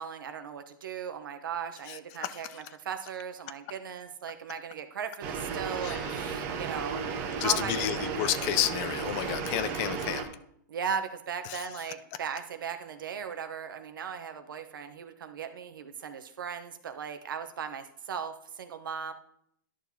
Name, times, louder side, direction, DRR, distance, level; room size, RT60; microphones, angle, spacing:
voice 1, 0.0-8.1 10.7-19.1, right 7 dB, 85° right, 9 dB, 0.9 m, -37 dB
voice 2, 1.9-2.6 5.8-6.3 7.4-10.3 11.5-11.6, left 13 dB, 40° left, 14 dB, 0.5 m, -31 dB
sound 1, 5.2-10.2, right 5 dB, 45° right, 1.2 m, -34 dB
11.5 x 6.2 x 2.8 m, 0.72 s
hypercardioid pair, 135°, 11 cm